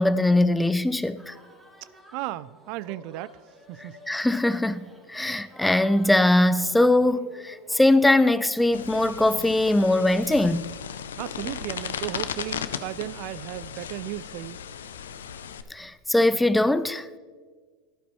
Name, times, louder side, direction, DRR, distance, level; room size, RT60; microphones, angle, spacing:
voice 1, 0.0-1.3 3.8-10.7 15.7-17.1, left 1 dB, 5° left, 0.4 m, -21 dB
sound 1, 1.2-7.9, left 1 dB, 10° right, 2.6 m, -51 dB
voice 2, 2.1-3.4 3.7-4.0 11.2-14.6, right 15 dB, 60° right, 0.3 m, -35 dB
sound 2, 8.7-15.6, left 8 dB, 85° left, 0.5 m, -36 dB
13.0 x 11.5 x 3.1 m
hypercardioid pair, 95°, 0 cm